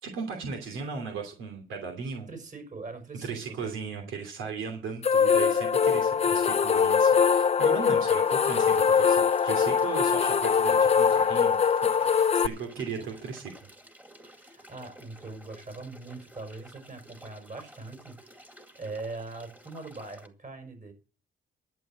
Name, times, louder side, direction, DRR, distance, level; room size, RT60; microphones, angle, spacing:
voice 1, 0.0-2.3 3.2-11.6 12.0-13.5, right 5 dB, 80° right, 3 dB, 2.9 m, -37 dB
voice 2, 2.3-4.1 4.6-4.8 13.0-13.1 14.2-18.4 18.8-20.9, right 3 dB, 40° right, 6 dB, 5.4 m, -42 dB
sound 1, 5.0-12.5, left 6 dB, 30° left, 0.6 m, -22 dB
sound 2, 8.2-20.3, right 1 dB, 10° right, 2.2 m, -52 dB
12.5 x 7.4 x 7.7 m, 0.35 s
cardioid pair, 90°, 20 cm